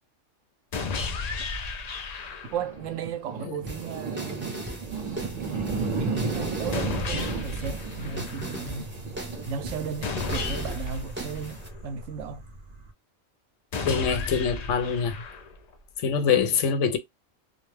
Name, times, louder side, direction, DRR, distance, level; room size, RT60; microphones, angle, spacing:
sound 1, 0.7-2.7 6.7-8.7 10.0-12.0 13.7-15.7, left 4 dB, 60° left, 0.4 m, -34 dB
sound 2, 2.5-12.9, right 4 dB, 45° right, 0.8 m, -34 dB
voice 1, 2.5-4.5 5.3-8.9 9.4-12.4 16.2-16.5, right 7 dB, 80° right, 0.9 m, -35 dB
sound 3, 3.7-11.7, right 1 dB, 10° right, 0.6 m, -39 dB
voice 2, 13.8-15.2 16.0-17.0, left 6 dB, 80° left, 0.9 m, -24 dB
2.4 x 2.2 x 3.1 m
omnidirectional pair, 1.3 m